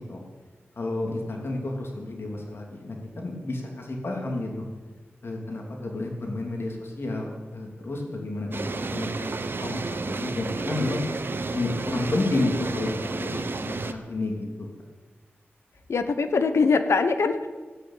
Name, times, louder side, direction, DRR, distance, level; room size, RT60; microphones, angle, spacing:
voice 1, 0.7-4.7 5.2-9.3 9.6-11.0 11.5-14.7, left 2 dB, 60° left, 0 dB, 3.1 m, -31 dB
sound 1, 8.5-13.9, right 3 dB, 55° right, 1.0 m, -31 dB
voice 2, 15.9-17.5, left 4 dB, 90° left, 9 dB, 1.0 m, -22 dB
15.5 x 9.0 x 9.0 m, 1.3 s
wide cardioid pair, 90°, 4 cm